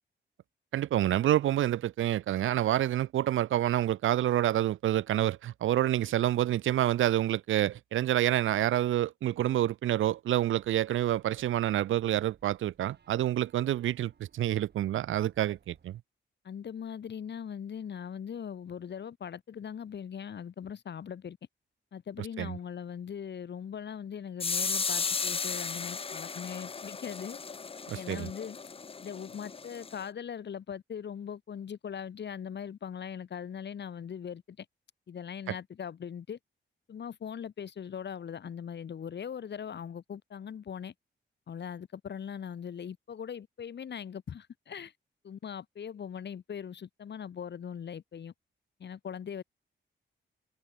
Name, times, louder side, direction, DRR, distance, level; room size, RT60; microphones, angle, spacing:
voice 1, 0.7-16.0 22.4-22.6 27.9-28.3, right 12 dB, 85° right, 0.5 m, -28 dB
sound 1, 10.5-16.0, right 7 dB, 60° right, 6.5 m, -64 dB
voice 2, 16.4-21.4 21.9-27.4 27.9-28.6 29.0-34.6 35.1-36.4 36.9-40.9 41.5-44.9 45.2-48.3 48.8-49.4, left 8 dB, 60° left, 1.6 m, -40 dB
sound 2, 24.4-30.0, left 5 dB, 30° left, 0.6 m, -35 dB
wide cardioid pair, 120°, 20 cm